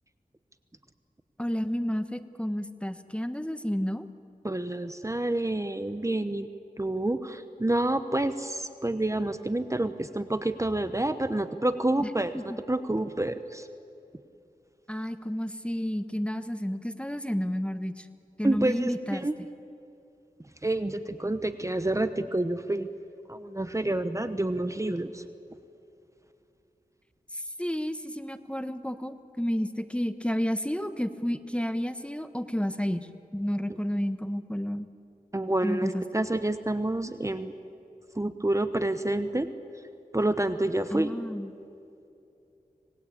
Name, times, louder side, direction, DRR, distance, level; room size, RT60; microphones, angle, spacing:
voice 1, 1.4-4.1 12.0-12.6 14.9-18.1 18.4-19.3 27.3-34.9 35.6-36.0 40.9-41.5, equal, 5° left, 10 dB, 1.2 m, -31 dB
voice 2, 4.4-6.5 6.8-13.7 18.4-19.4 20.6-22.9 23.3-25.2 35.3-37.5 38.1-39.5 40.1-41.1, right 1 dB, 20° right, 10 dB, 1.0 m, -28 dB
26.0 x 19.5 x 8.6 m, 2.7 s
wide cardioid pair, 60°, 15 cm